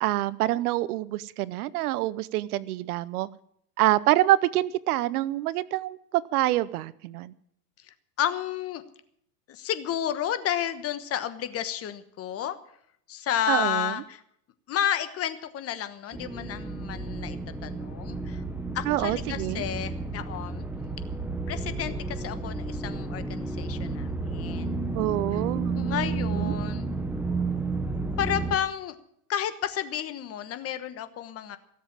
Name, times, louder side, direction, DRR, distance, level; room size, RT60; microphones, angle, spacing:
voice 1, 0.0-3.3 3.8-7.3 13.5-13.9 18.9-19.6 24.9-25.8 26.3-26.5, right 15 dB, 65° right, 19 dB, 0.8 m, -26 dB
voice 2, 7.8-8.8 9.5-12.6 13.1-14.2 14.7-18.4 18.7-20.7 21.5-24.9 25.7-27.0 28.2-28.9 29.3-31.6, left 10 dB, 30° left, 12 dB, 1.2 m, -31 dB
sound 1, 16.1-28.6, right 3 dB, 5° right, 1.0 m, -32 dB
17.5 x 7.5 x 8.7 m, 0.70 s
supercardioid pair, 125°, 48 cm